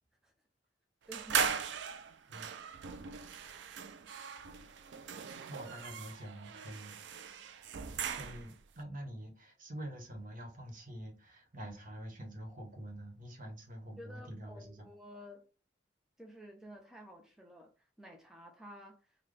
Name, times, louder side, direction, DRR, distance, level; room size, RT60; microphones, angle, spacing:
voice 1, 1.1-1.7 14.0-15.4 16.2-19.2, equal, 5° right, 0.5 m, -52 dB
sound 1, 1.1-8.6, right 7 dB, 75° right, 0.4 m, -39 dB
voice 2, 5.5-7.6 8.0-14.9, right 1 dB, 50° right, 1.1 m, -46 dB
4.0 x 2.2 x 3.3 m
head